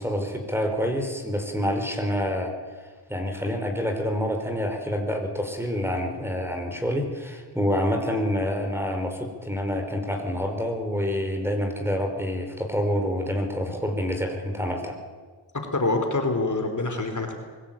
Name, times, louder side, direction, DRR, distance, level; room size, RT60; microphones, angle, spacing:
voice 1, 0.0-2.5 3.1-15.0, equal, 5° right, 4 dB, 4.8 m, -27 dB
voice 2, 15.7-17.3, left 2 dB, 40° left, 5 dB, 4.0 m, -25 dB
23.0 x 16.5 x 9.1 m, 1.5 s
cardioid pair, 55°, 47 cm